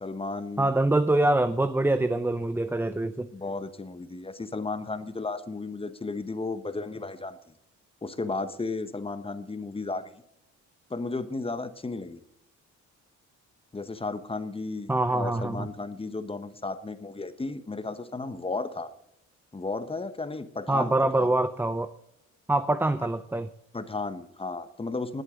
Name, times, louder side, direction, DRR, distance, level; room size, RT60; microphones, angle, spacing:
voice 1, 0.0-0.7 3.3-7.4 8.0-10.1 10.9-12.2 13.7-18.9 19.5-21.3 23.7-25.2, left 3 dB, 20° left, 12 dB, 1.1 m, -34 dB
voice 2, 0.6-3.3 14.9-15.7 20.7-21.9 22.5-23.5, right 2 dB, 5° right, 12 dB, 0.5 m, -24 dB
19.5 x 8.1 x 3.8 m, 0.80 s
cardioid pair, 90°, 30 cm